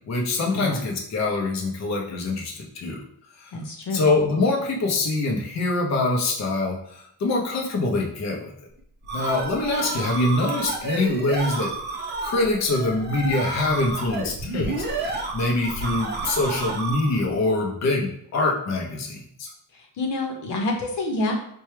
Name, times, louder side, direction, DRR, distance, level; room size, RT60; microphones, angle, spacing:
voice 1, 0.1-3.0 3.4-3.5 3.9-8.5 9.1-11.7 12.2-14.8 15.0-19.5, left 2 dB, 40° left, -1 dB, 0.7 m, -24 dB
voice 2, 3.5-4.0 20.0-21.3, left 2 dB, 80° left, 1 dB, 0.9 m, -27 dB
sound 1, 8.8-17.3, right 3 dB, 25° right, 0.5 m, -31 dB
4.4 x 2.2 x 3.1 m, 0.69 s
wide cardioid pair, 145°, 41 cm